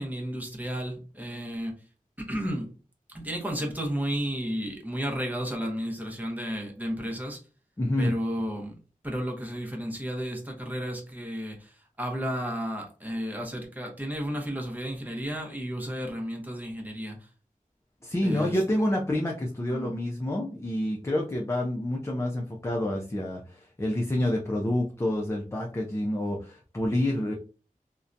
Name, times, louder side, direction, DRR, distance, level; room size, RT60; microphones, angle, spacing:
voice 1, 0.0-1.7 2.3-2.7 3.1-7.4 8.0-8.7 9.0-17.3 18.2-18.6 19.7-19.9, equal, 10° right, 1 dB, 0.8 m, -33 dB
voice 2, 7.8-8.1 18.0-27.3, left 1 dB, 20° left, -1 dB, 0.5 m, -28 dB
2.7 x 2.2 x 2.5 m, 0.36 s
wide cardioid pair, 65°, 15 cm